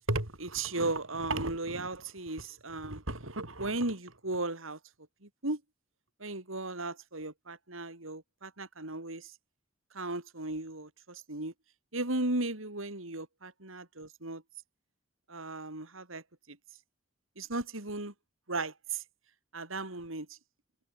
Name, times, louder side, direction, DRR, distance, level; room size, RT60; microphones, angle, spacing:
voice 1, 0.1-4.8 5.2-5.6 6.2-9.3 9.9-11.5 11.9-14.4 15.3-16.2 16.5-16.6 17.4-18.1 18.5-19.0 19.5-20.3, right 2 dB, 80° right, 4.4 m, -35 dB
head